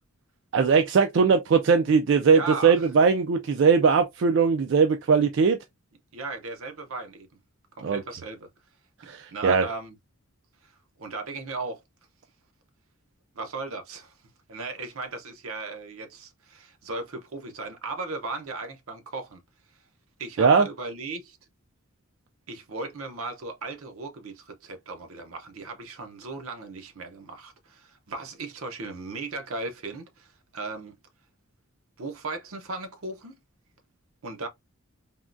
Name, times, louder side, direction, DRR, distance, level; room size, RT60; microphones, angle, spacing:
voice 1, 0.5-5.6 7.8-8.0 9.1-9.7 20.4-20.7, right 5 dB, 60° right, 0.3 m, -20 dB
voice 2, 2.2-2.9 6.1-7.3 7.8-8.5 9.3-10.0 10.6-10.7 11.0-11.8 13.3-14.1 14.5-19.4 20.2-21.4 22.5-31.0 32.0-33.3 34.2-34.5, right 3 dB, 75° right, 0.7 m, -36 dB
3.5 x 2.2 x 2.5 m
head